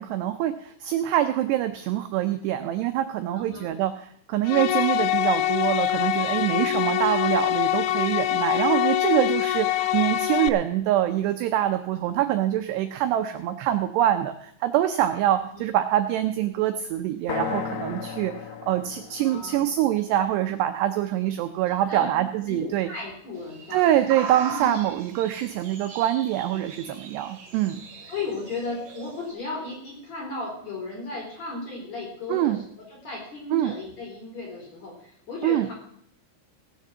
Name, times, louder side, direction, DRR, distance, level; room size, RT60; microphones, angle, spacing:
voice 1, 0.0-18.3 18.7-22.9 23.7-27.8 32.3-32.6 33.5-33.8 35.4-35.7, right 12 dB, 85° right, 7 dB, 2.4 m, -25 dB
voice 2, 3.3-3.7 6.6-6.9 9.7-10.0 15.4-15.6 19.2-19.6 21.9-23.9 24.5-24.7 28.1-32.6 32.9-35.7, left 3 dB, 35° left, -1 dB, 5.1 m, -35 dB
sound 1, 4.5-10.5, left 14 dB, 90° left, 3.3 m, -24 dB
sound 2, 17.3-21.2, left 8 dB, 70° left, 3.0 m, -36 dB
sound 3, 23.3-29.3, right 6 dB, 50° right, 2.4 m, -39 dB
17.0 x 6.7 x 7.4 m, 0.65 s
omnidirectional pair, 5.7 m